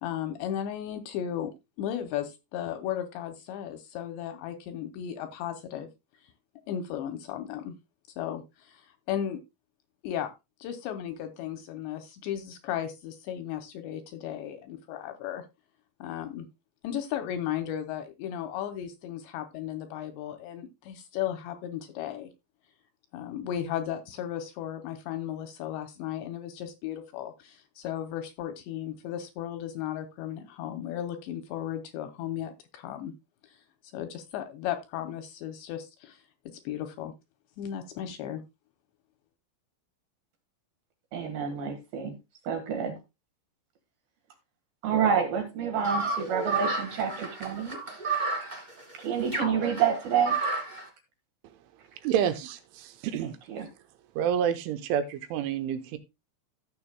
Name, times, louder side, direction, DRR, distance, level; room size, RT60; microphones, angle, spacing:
voice 1, 0.0-1.5 1.8-5.9 6.7-7.8 8.2-9.4 10.0-10.3 10.6-15.4 16.0-16.5 16.8-22.3 23.1-33.1 33.5-33.6 33.9-36.2 36.6-37.1 37.6-38.4, left 10 dB, 80° left, 2.8 m, -35 dB
voice 2, 41.1-42.1 42.4-43.0 44.8-47.8 48.4-48.5 48.9-50.6 53.5-53.7, right 7 dB, 60° right, 3.2 m, -28 dB
sound 1, 45.8-50.8, right 3 dB, 40° right, 0.6 m, -31 dB
voice 3, 52.0-53.4 54.2-56.0, right 9 dB, 80° right, 3.2 m, -28 dB
15.5 x 7.0 x 2.2 m
omnidirectional pair, 5.6 m